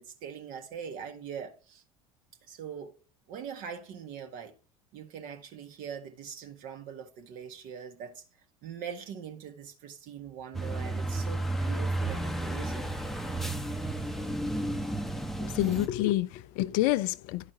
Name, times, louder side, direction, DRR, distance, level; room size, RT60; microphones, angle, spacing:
voice 1, 0.0-1.8 2.5-2.9 3.3-4.5 4.9-8.2 8.6-12.9, right 7 dB, 55° right, 1.7 m, -42 dB
sound 1, 10.5-15.9, right 1 dB, ahead, 0.8 m, -32 dB
voice 2, 15.4-17.5, left 15 dB, 55° left, 0.5 m, -28 dB
11.5 x 4.9 x 4.9 m
figure-of-eight pair, 70°, 17 cm